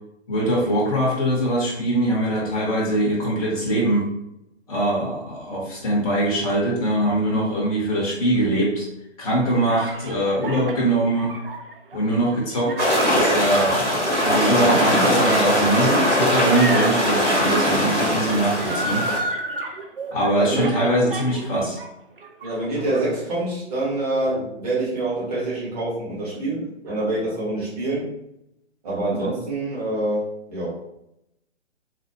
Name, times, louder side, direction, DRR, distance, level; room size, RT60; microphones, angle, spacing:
voice 1, 0.3-4.1 4.7-8.9 9.2-11.3 11.9-19.0 20.1-21.8, right 1 dB, 30° left, -5 dB, 0.7 m, -22 dB
sound 1, 9.7-21.9 22.2-23.0, right 2 dB, 50° right, 0.4 m, -33 dB
sound 2, 12.8-19.2, equal, 85° right, 1.3 m, -20 dB
voice 2, 20.4-20.7 22.4-28.1 28.8-30.8, right 2 dB, 35° right, -7 dB, 1.4 m, -26 dB
3.2 x 2.1 x 2.9 m, 0.82 s
figure-of-eight pair, 135°, 35 cm